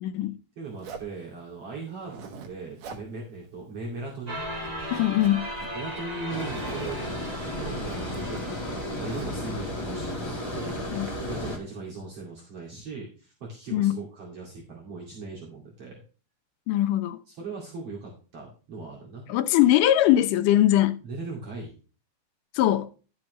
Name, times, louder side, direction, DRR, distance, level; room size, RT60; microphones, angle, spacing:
voice 1, 0.0-0.4 4.9-5.5 10.9-11.1 13.7-14.0 16.7-17.2 19.3-21.0 22.5-22.9, left 13 dB, 90° left, 2.3 m, -21 dB
voice 2, 0.6-4.4 5.7-7.1 7.5-10.8 11.3-16.0 17.3-19.2 21.0-21.8, right 3 dB, 50° right, 3.3 m, -39 dB
Zipper (clothing), 0.8-1.2 1.9-2.5 2.8-3.1 3.4-3.5 3.9-4.3 4.6-5.7 6.4-7.0 7.3-9.5 10.1-11.1, right 5 dB, 90° right, 2.9 m, -45 dB
sound 1, 4.3-10.0, equal, 25° right, 0.9 m, -37 dB
Water, 6.3-11.6, left 1 dB, 20° left, 0.7 m, -33 dB
11.5 x 7.4 x 3.1 m
omnidirectional pair, 3.6 m